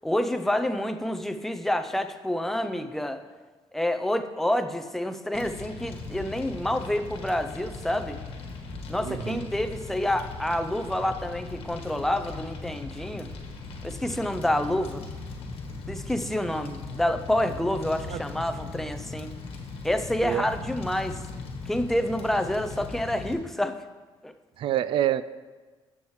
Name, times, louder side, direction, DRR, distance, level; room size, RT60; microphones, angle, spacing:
voice 1, 0.0-3.2 3.7-8.2 8.9-13.3 13.8-15.0 15.9-19.3 19.8-21.2 21.7-23.8 24.2-24.3, left 1 dB, 5° left, 7 dB, 0.5 m, -28 dB
Fire, 5.3-23.3, left 3 dB, 80° left, 1.3 m, -39 dB
voice 2, 9.0-9.4 18.1-18.2 20.2-20.5 24.6-25.2, right 11 dB, 65° right, 16 dB, 0.4 m, -27 dB
10.5 x 7.3 x 3.1 m, 1.3 s
cardioid pair, 110°, 10 cm